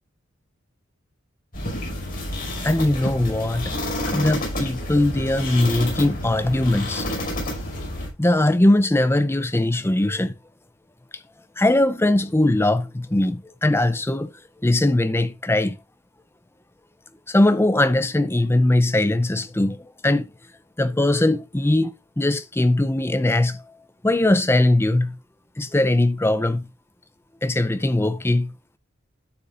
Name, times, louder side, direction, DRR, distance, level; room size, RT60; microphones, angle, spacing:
sound 1, 1.5-8.1, left 1 dB, 45° left, 5.5 m, -29 dB
voice 1, 2.6-3.7 4.1-7.1 8.2-10.4 11.6-14.3 14.6-15.8 17.3-20.3 20.8-23.6 24.0-25.2 25.6-26.7 27.4-28.5, left 1 dB, 10° left, 0.6 m, -20 dB
11.5 x 6.5 x 2.6 m
head